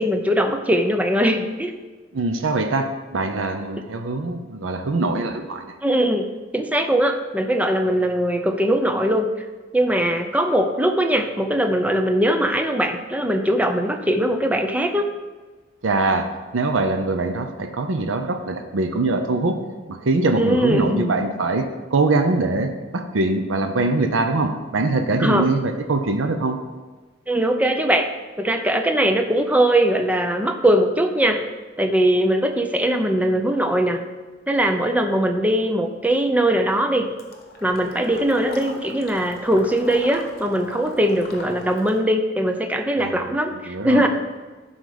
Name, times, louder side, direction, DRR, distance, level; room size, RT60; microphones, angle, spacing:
voice 1, 0.0-1.7 5.8-6.3 6.5-9.3 9.7-15.1 20.4-21.1 25.2-25.5 27.3-28.1 28.4-31.4 31.8-34.0 34.5-37.1 37.6-44.1, right 1 dB, 10° right, 5 dB, 0.5 m, -20 dB
voice 2, 2.1-5.8 15.8-19.6 19.9-26.6 43.0-44.1, right 2 dB, 80° right, 6 dB, 0.7 m, -23 dB
Water / Liquid, 37.2-42.0, left 2 dB, 50° left, 1.2 m, -40 dB
11.5 x 4.0 x 5.0 m, 1.3 s
head